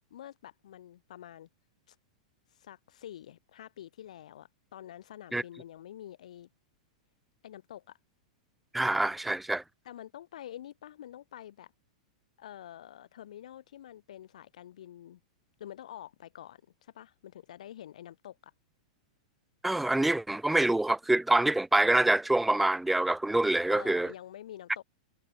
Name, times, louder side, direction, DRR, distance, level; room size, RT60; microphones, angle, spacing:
voice 1, 0.1-1.5 1.9-2.0 2.5-6.5 7.4-8.0 9.8-11.7 12.4-15.2 15.6-18.5 23.7-24.8, left 11 dB, 75° left, 4.3 m, -47 dB
voice 2, 8.7-9.6 19.6-24.1, right 2 dB, ahead, 0.4 m, -26 dB
supercardioid pair, 160°, 4 cm